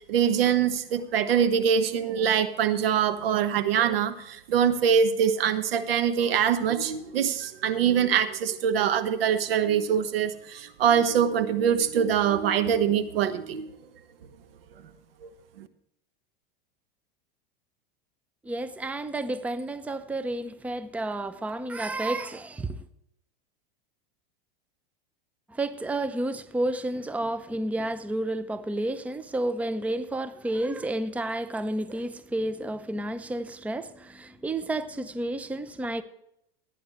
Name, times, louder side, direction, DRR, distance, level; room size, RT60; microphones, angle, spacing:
voice 1, 0.1-13.7 15.2-15.3 15.6-15.7, right 8 dB, 75° right, 1.2 m, -24 dB
voice 2, 18.4-22.8 25.5-36.0, right 1 dB, 5° right, 0.6 m, -31 dB
16.5 x 9.3 x 3.1 m
hypercardioid pair, 100°, 29 cm